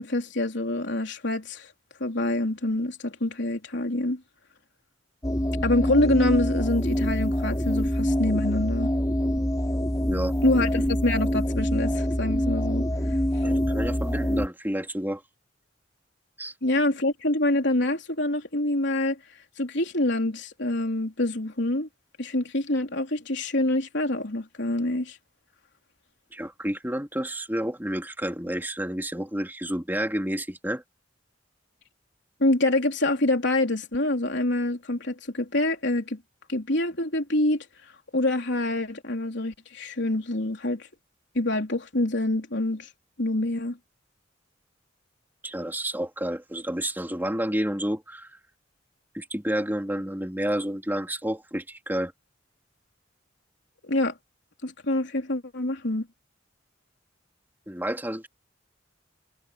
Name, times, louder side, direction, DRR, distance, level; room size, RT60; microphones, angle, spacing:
voice 1, 0.0-1.7 2.0-4.2 5.6-8.9 10.4-12.8 13.3-13.4 16.6-19.2 19.6-21.9 22.2-25.2 32.4-36.2 36.5-37.7 38.1-40.9 41.3-42.9 43.2-43.8 53.8-54.1 54.6-56.1, left 1 dB, 65° left, 3.9 m, -26 dB
sound 1, 5.2-14.5, equal, 20° left, 4.1 m, -25 dB
voice 2, 13.4-15.2 16.4-16.5 26.3-30.8 45.4-48.4 49.1-52.1 57.7-58.3, right 1 dB, 10° right, 3.5 m, -30 dB
head